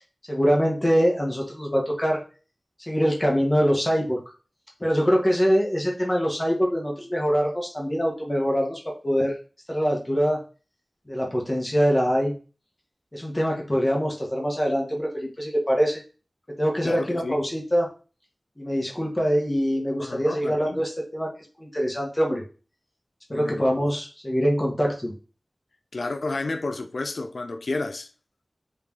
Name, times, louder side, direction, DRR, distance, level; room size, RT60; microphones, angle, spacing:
voice 1, 0.3-2.2 2.9-4.2 4.8-9.3 9.7-10.4 11.1-12.3 13.1-16.0 16.6-17.9 18.6-21.3 21.6-22.4 23.3-25.1, equal, 20° left, 1.2 m, -24 dB
voice 2, 16.8-17.4 20.0-20.8 23.3-23.7 25.9-28.1, left 3 dB, 80° left, 0.3 m, -31 dB
3.2 x 2.9 x 3.5 m
wide cardioid pair, 70°, 0 cm